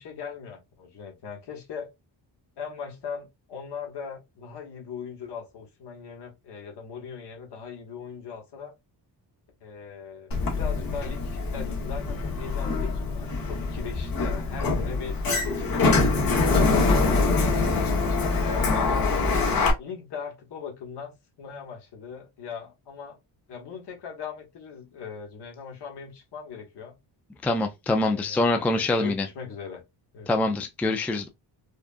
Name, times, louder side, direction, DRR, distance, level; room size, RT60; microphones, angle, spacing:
voice 1, 0.0-1.9 2.6-8.7 9.6-15.2 15.5-19.0 19.8-23.2 23.5-26.9 27.9-29.8 30.1-30.6, left 6 dB, 70° left, 1.6 m, -40 dB
Sliding door, 10.3-19.7, left 3 dB, 55° left, 1.2 m, -24 dB
voice 2, 27.4-29.3 30.3-31.3, left 2 dB, 5° left, 0.3 m, -25 dB
4.9 x 2.4 x 2.5 m
cardioid pair, 125°, 43 cm